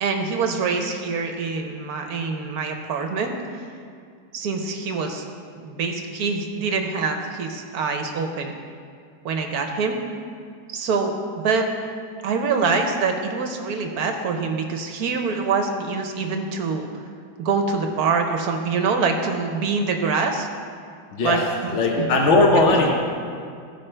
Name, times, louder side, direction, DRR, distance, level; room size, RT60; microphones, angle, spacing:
voice 1, 0.0-3.7 4.3-5.2 5.5-8.6 9.2-10.0 10.7-11.7 12.2-17.0 17.4-20.5 21.2-22.1, right 4 dB, 65° right, 4 dB, 1.0 m, -25 dB
voice 2, 21.1-21.5 21.7-22.9, left 2 dB, 55° left, 0 dB, 0.8 m, -18 dB
14.5 x 5.5 x 4.4 m, 2.2 s
omnidirectional pair, 2.2 m